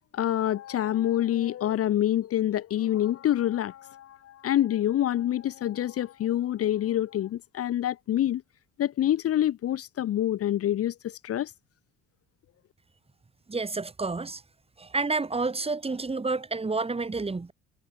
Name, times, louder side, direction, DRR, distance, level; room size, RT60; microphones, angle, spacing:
voice 1, 0.1-8.4 8.8-11.5, left 12 dB, 50° left, 1.0 m, -26 dB
voice 2, 13.5-14.4 14.8-17.5, right 3 dB, 20° right, 2.4 m, -29 dB
supercardioid pair, 80°, 29 cm